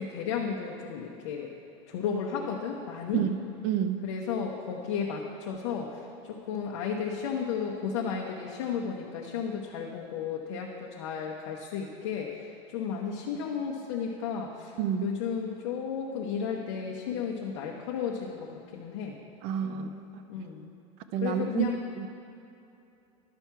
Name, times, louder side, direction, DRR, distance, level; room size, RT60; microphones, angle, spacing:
voice 1, 0.0-1.5 1.9-3.2 4.0-14.8 15.0-19.2 19.6-19.9 20.3-20.7 21.2-21.8, left 6 dB, 60° left, -1 dB, 0.8 m, -33 dB
voice 2, 3.6-4.1 14.8-15.1 19.4-20.0 21.1-21.7 22.0-22.2, right 9 dB, 35° right, 9 dB, 0.4 m, -29 dB
11.5 x 6.0 x 4.5 m, 2.8 s
supercardioid pair, 175°, 16 cm